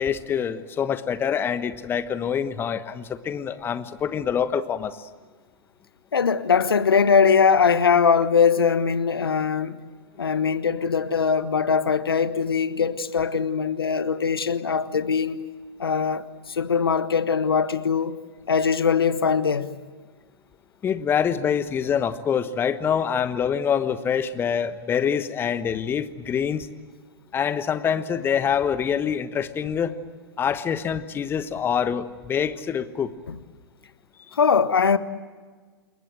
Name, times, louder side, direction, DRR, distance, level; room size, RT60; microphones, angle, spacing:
voice 1, 0.0-5.1 20.8-26.7 27.3-30.0 30.4-33.1, left 7 dB, 15° left, 1.2 m, -25 dB
voice 2, 6.1-9.8 10.2-15.4 15.8-18.2 18.5-19.7 33.3-33.4 34.3-35.0, left 6 dB, 70° left, 1.3 m, -21 dB
28.5 x 22.0 x 7.7 m
figure-of-eight pair, 110°, 13 cm